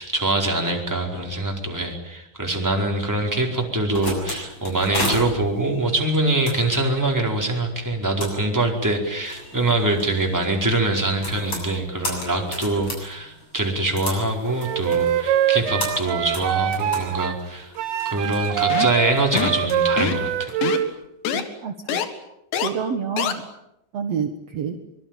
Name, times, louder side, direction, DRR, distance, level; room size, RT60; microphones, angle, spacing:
voice 1, 0.0-17.7 18.0-20.5, right 2 dB, 5° right, 1 dB, 4.0 m, -24 dB
sound 1, 3.6-20.8, left 1 dB, 30° left, 7.8 m, -35 dB
Wind instrument woodwind instrument, 14.6-17.4 17.8-20.9, right 11 dB, 90° right, 3.5 m, -24 dB
sound 2, 18.7-19.0 19.3-19.6 20.0-20.3 20.6-20.8 21.3-21.4 21.9-22.1 22.5-22.7 23.2-23.3, left 9 dB, 75° left, 4.0 m, -24 dB
voice 2, 21.3-22.0 22.6-23.5 23.9-24.8, right 6 dB, 65° right, 5 dB, 1.6 m, -28 dB
24.5 x 23.5 x 9.1 m, 0.83 s
omnidirectional pair, 5.1 m